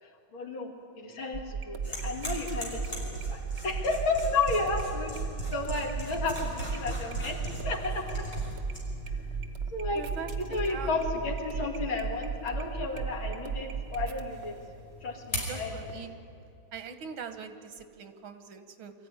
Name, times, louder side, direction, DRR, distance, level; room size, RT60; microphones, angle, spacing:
voice 1, 0.0-5.1 5.5-7.4 7.6-8.3 9.7-10.0 10.4-14.6 15.0-15.9, left 3 dB, 85° left, 1 dB, 3.2 m, -32 dB
sound 1, 1.3-14.7 15.2-15.5 15.9-16.0, right 5 dB, 40° right, 1.1 m, -36 dB
sound 2, 1.8-16.0, equal, 20° left, 5.4 m, -41 dB
voice 2, 10.0-11.0 15.3-16.1 16.7-18.9, right 6 dB, 90° right, 8 dB, 2.1 m, -42 dB
23.5 x 14.5 x 9.7 m, 2.6 s
omnidirectional pair, 2.1 m